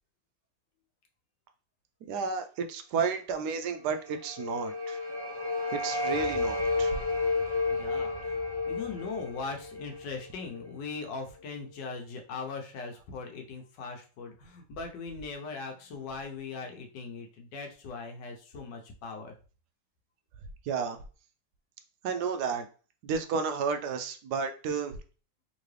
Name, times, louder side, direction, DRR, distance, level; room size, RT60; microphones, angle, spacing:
voice 1, 2.1-5.0 5.7-6.9 20.7-21.0 22.0-22.7 23.0-25.0, right 6 dB, 70° right, 7 dB, 1.0 m, -32 dB
sound 1, 3.9-10.9, left 3 dB, 25° right, 0.6 m, -32 dB
voice 2, 7.4-8.4 8.7-19.3, left 4 dB, 70° left, 3 dB, 1.4 m, -40 dB
3.8 x 3.0 x 3.2 m, 0.36 s
omnidirectional pair, 2.0 m